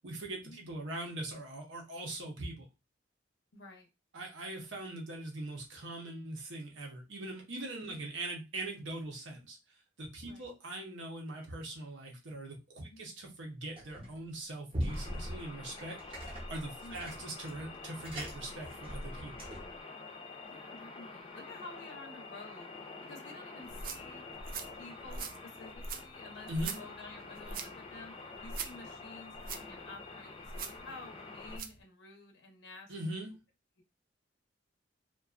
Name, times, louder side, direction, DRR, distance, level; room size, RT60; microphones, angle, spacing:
voice 1, 0.0-2.7 4.1-9.6 10.0-19.5 26.5-26.8 32.9-33.3, right 1 dB, 85° right, 1 dB, 0.8 m, -41 dB
voice 2, 3.5-3.9 7.8-8.0 10.2-10.5 12.8-13.0 16.8-17.0 20.4-22.7 23.0-24.2 24.7-32.9, left 3 dB, 75° left, 2 dB, 0.7 m, -51 dB
sound 1, 13.8-14.3 14.7-19.8, equal, 30° right, 0.8 m, -41 dB
sound 2, 14.9-31.6, left 3 dB, 30° left, 0.5 m, -48 dB
sound 3, 23.6-31.8, right 4 dB, 50° right, 0.3 m, -44 dB
2.5 x 2.3 x 2.4 m, 0.26 s
head